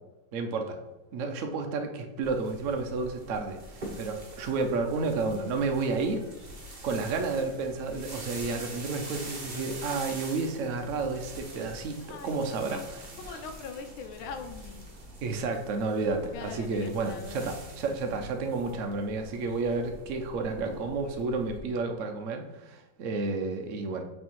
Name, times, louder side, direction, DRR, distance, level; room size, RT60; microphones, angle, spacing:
voice 1, 0.3-0.8 1.1-6.2 6.8-13.4 15.2-24.0, right 3 dB, 80° right, 4 dB, 0.7 m, -31 dB
sound 1, 2.2-21.6, right 1 dB, 40° right, 0.7 m, -45 dB
voice 2, 8.5-9.0 12.0-12.4 12.7-12.8 13.2-14.9 16.3-17.5, left 5 dB, 90° left, 7 dB, 1.5 m, -42 dB
6.5 x 3.4 x 4.5 m, 1.1 s
omnidirectional pair, 2.2 m